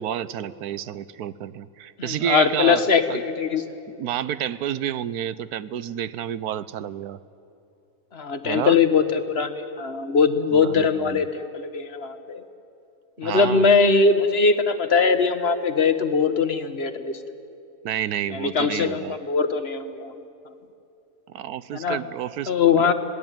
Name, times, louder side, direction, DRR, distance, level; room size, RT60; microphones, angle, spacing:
voice 1, 0.0-2.8 3.1-3.2 3.9-7.2 8.4-8.8 10.5-11.2 13.2-13.7 17.8-19.2 21.3-22.9, right 10 dB, 85° right, 16 dB, 1.3 m, -30 dB
voice 2, 2.0-3.6 8.1-12.4 13.2-17.2 18.3-20.2 21.7-22.0 22.5-22.9, left 5 dB, 45° left, 9 dB, 1.4 m, -21 dB
26.5 x 18.5 x 9.1 m, 2.7 s
omnidirectional pair, 1.6 m